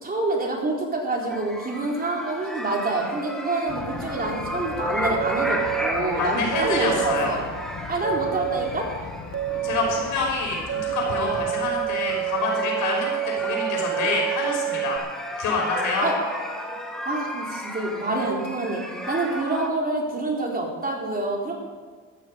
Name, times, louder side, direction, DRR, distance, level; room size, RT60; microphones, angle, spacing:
voice 1, 0.0-7.4 7.9-8.9 16.0-16.2 17.0-18.8 19.1-21.5, right 2 dB, 30° right, -1 dB, 4.1 m, -27 dB
sound 1, 1.3-19.7, equal, ahead, 2.2 m, -34 dB
Thunder, 3.7-12.5, left 5 dB, 60° left, 1.6 m, -40 dB
sound 2, 5.1-5.9 6.5-7.3 8.0-8.7 9.3-10.0 10.7-15.0, right 15 dB, 65° right, 1.7 m, -28 dB
voice 2, 6.2-7.4 9.6-15.0 15.4-16.1, left 4 dB, 85° left, -1 dB, 5.7 m, -27 dB
14.5 x 13.0 x 5.3 m, 1.5 s
cardioid pair, 90°, 30 cm